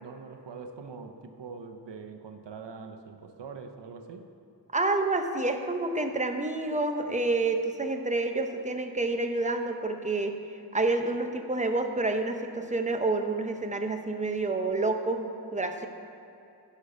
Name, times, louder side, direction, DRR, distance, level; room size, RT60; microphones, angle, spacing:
voice 1, 0.0-4.3, right 5 dB, 85° right, 6 dB, 0.7 m, -43 dB
voice 2, 4.7-10.3 10.7-15.9, right 2 dB, 15° right, 5 dB, 0.7 m, -28 dB
11.5 x 5.4 x 5.1 m, 2.8 s
wide cardioid pair, 70°, 41 cm